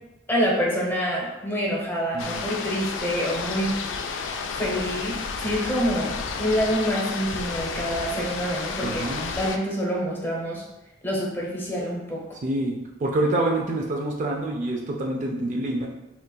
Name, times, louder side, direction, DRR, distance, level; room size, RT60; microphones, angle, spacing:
voice 1, 0.3-3.7 4.6-9.0 9.3-10.6 11.0-12.2, equal, 10° left, -4 dB, 0.7 m, -26 dB
sound 1, 2.2-9.6, left 5 dB, 75° left, 0.3 m, -31 dB
voice 2, 8.8-9.3 12.4-15.9, right 2 dB, 40° right, 0 dB, 0.3 m, -27 dB
3.8 x 2.4 x 2.2 m, 0.97 s
head